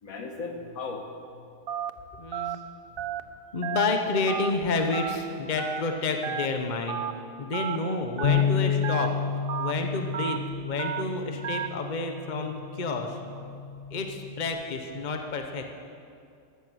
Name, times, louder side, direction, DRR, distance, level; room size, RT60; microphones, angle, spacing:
voice 1, 0.0-1.4 2.5-2.6 13.6-13.7, left 3 dB, 75° left, 3 dB, 2.0 m, -38 dB
Telephone, 1.7-1.9 2.3-2.5 3.0-3.2 3.6-3.9 4.3-4.5 4.9-5.2 5.6-5.8 6.2-6.5 6.9-7.1 7.5-7.8 8.2-8.4 8.8-9.1 9.5-9.7 10.1-10.4 10.8-11.0 11.4-11.7, right 9 dB, 55° right, 0.7 m, -32 dB
voice 2, 2.2-2.6 3.5-7.0 7.4-9.1 9.6-13.2 13.9-15.6, left 3 dB, 35° left, 4 dB, 1.1 m, -30 dB
Bass guitar, 8.2-14.5, left 7 dB, 55° left, 0.5 m, -30 dB
15.5 x 12.5 x 6.4 m, 2.4 s
omnidirectional pair, 1.5 m